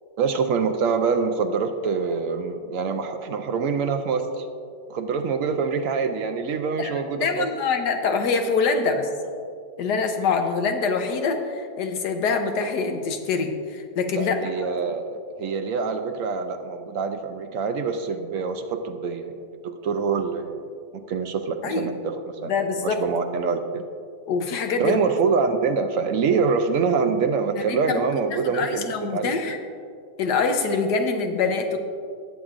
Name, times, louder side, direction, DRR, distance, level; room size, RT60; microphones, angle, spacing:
voice 1, 0.2-4.5 4.9-7.5 14.2-19.3 19.6-20.6 20.9-22.5 22.8-23.9 24.8-29.4, right 5 dB, 70° right, 6 dB, 0.8 m, -25 dB
voice 2, 7.2-9.1 9.8-14.7 21.6-21.9 22.4-23.0 24.3-25.0 27.5-28.1 28.5-29.6 30.2-31.8, left 4 dB, 70° left, 5 dB, 1.4 m, -25 dB
19.0 x 7.4 x 2.5 m, 2.3 s
omnidirectional pair, 1.9 m